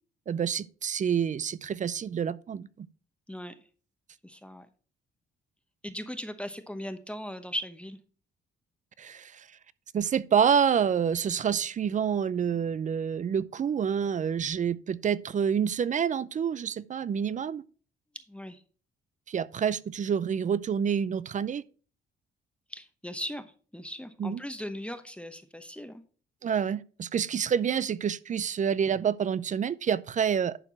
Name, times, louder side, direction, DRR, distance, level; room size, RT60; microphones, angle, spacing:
voice 1, 0.3-2.9 9.0-9.5 9.9-17.6 19.3-21.6 24.2-24.4 26.4-30.6, right 7 dB, 40° right, 0.5 m, -28 dB
voice 2, 3.3-3.6 4.2-4.7 5.8-8.0 18.1-18.6 22.7-26.0, equal, 5° left, 0.9 m, -38 dB
11.0 x 4.5 x 4.4 m
cardioid pair, 90°, 20 cm